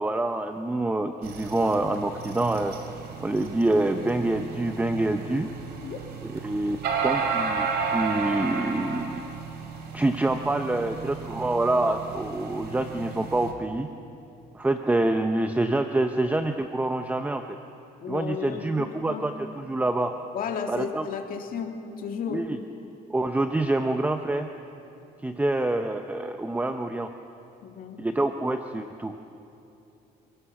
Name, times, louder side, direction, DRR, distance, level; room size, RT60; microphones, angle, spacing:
voice 1, 0.0-2.7 3.2-5.5 6.4-9.2 9.9-13.9 14.5-17.4 18.1-20.2 20.7-21.1 22.3-22.6 23.1-24.5 25.2-27.1 28.0-29.2, right 2 dB, 10° right, 7 dB, 0.8 m, -26 dB
sound 1, 1.2-13.5, right 5 dB, 75° right, 2.8 m, -33 dB
voice 2, 18.0-19.3 20.3-22.5 27.6-28.0, left 6 dB, 55° left, 4 dB, 2.3 m, -33 dB
26.5 x 18.0 x 5.9 m, 2.8 s
cardioid pair, 110°, 17 cm